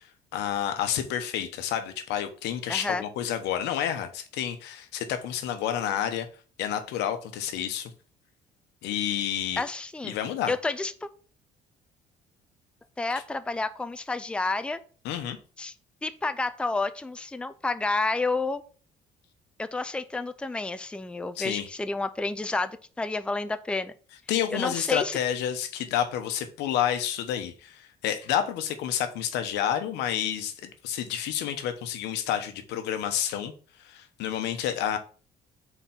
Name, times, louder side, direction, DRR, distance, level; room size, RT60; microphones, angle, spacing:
voice 1, 0.0-6.3 6.6-7.9 8.8-9.6 10.0-10.5 15.0-15.4 21.4-21.7 24.3-33.5 33.8-35.0, left 10 dB, 90° left, 1.0 m, -29 dB
voice 2, 2.7-3.0 9.6-10.1 10.5-11.1 13.0-14.8 15.6-15.7 16.0-18.6 19.6-23.9 24.5-25.2, left 3 dB, 5° left, 0.5 m, -30 dB
4.5 x 4.4 x 5.8 m
cardioid pair, 110°, 17 cm